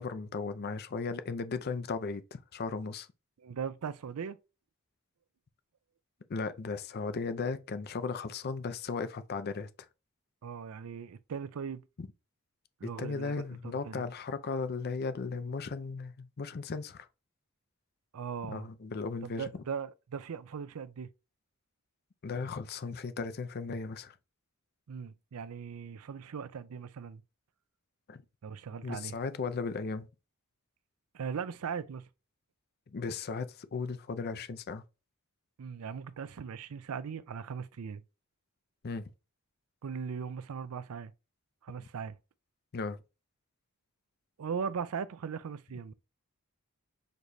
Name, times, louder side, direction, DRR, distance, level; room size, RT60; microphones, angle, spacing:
voice 1, 0.0-3.1 6.3-9.7 12.0-12.1 12.8-17.1 18.5-19.5 22.2-24.1 28.1-28.2 28.8-30.1 32.9-34.8 38.8-39.1 42.7-43.0, left 4 dB, 45° left, 0.5 m, -36 dB
voice 2, 3.4-4.4 10.4-11.8 12.8-14.0 18.1-18.7 19.2-21.1 24.9-27.2 28.4-29.1 31.1-32.1 35.6-38.0 39.8-41.1 41.6-42.2 44.4-45.9, right 6 dB, 75° right, 0.4 m, -39 dB
6.5 x 3.1 x 2.6 m
head